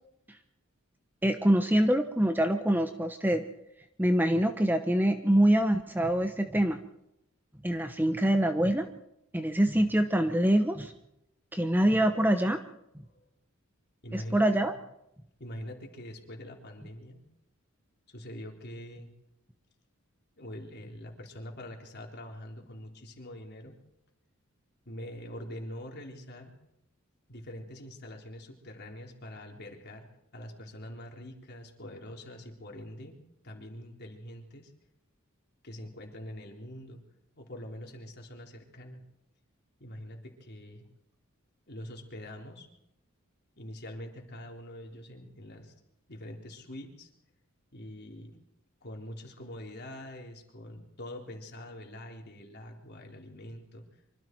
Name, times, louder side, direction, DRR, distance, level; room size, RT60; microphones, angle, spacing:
voice 1, 1.2-3.4 4.0-6.8 7.6-8.9 9.3-10.9 11.5-12.6 14.1-14.7, right 1 dB, 10° right, 7 dB, 0.9 m, -25 dB
voice 2, 14.0-14.5 15.4-17.2 18.1-19.1 20.4-23.8 24.9-26.5 27.3-30.1 30.3-34.7 35.6-37.0 37.4-39.0 39.8-40.9 41.7-42.7 43.6-45.7 46.1-47.1 47.7-48.4 48.8-53.9, left 1 dB, 50° left, 1 dB, 3.8 m, -44 dB
25.0 x 25.0 x 4.6 m, 0.83 s
head